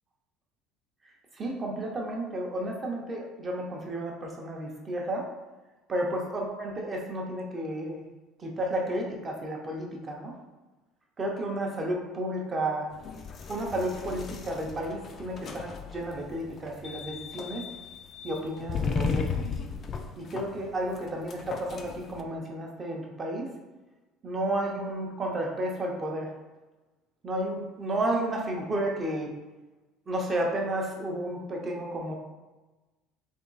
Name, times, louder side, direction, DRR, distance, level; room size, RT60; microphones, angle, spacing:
voice 1, 1.3-5.3 5.9-8.0 8.4-10.3 11.2-12.9 13.5-17.6 18.2-19.3 20.2-23.5 24.2-26.3 27.2-29.3 30.1-32.1, right 1 dB, 25° right, 0 dB, 0.8 m, -32 dB
sound 1, 12.9-22.2, left 5 dB, 30° left, 0.4 m, -36 dB
3.6 x 3.0 x 4.0 m, 1.2 s
cardioid pair, 140°, 0 cm